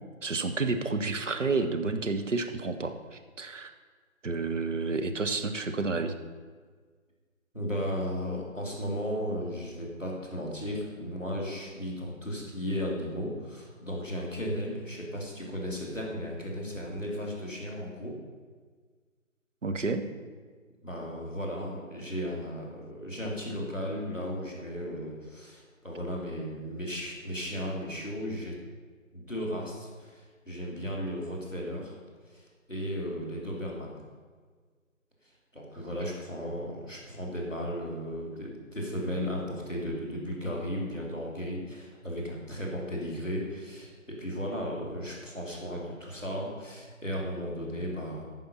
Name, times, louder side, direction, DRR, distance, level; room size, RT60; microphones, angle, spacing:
voice 1, 0.2-3.7 4.2-6.2 19.6-20.1, right 3 dB, 60° right, 7 dB, 1.1 m, -30 dB
voice 2, 7.5-18.1 20.8-28.6 29.1-31.9 32.3-33.9 35.5-48.2, equal, ahead, -15 dB, 1.4 m, -35 dB
15.0 x 5.6 x 5.6 m, 1.5 s
figure-of-eight pair, 160°, 41 cm